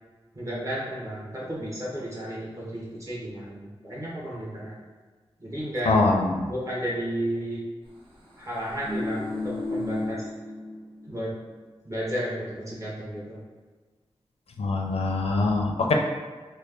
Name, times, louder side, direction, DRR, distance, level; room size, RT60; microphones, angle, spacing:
voice 1, 0.3-4.8 5.4-6.0 6.4-7.6 8.4-10.3 11.1-11.3 11.8-13.4, equal, 30° right, -6 dB, 1.2 m, -33 dB
voice 2, 5.9-6.5 14.6-15.9, left 3 dB, 75° left, 1 dB, 0.4 m, -23 dB
sound 1, 8.5-11.1 11.4-11.6, left 2 dB, 65° right, 1.1 m, -32 dB
3.3 x 2.2 x 3.4 m, 1.4 s
wide cardioid pair, 80°, 10 cm